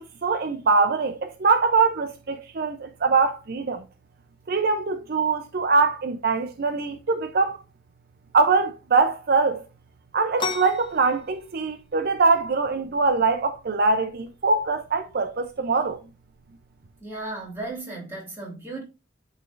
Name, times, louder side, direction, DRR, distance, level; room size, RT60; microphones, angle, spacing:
voice 1, 0.0-3.8 4.5-7.6 8.3-9.6 10.1-16.0, right 4 dB, 55° right, 0.6 m, -23 dB
sound 1, 10.4-17.8, left 4 dB, 25° left, 1.0 m, -39 dB
voice 2, 17.0-18.8, right 2 dB, 15° right, 3.1 m, -35 dB
11.5 x 4.0 x 2.5 m
head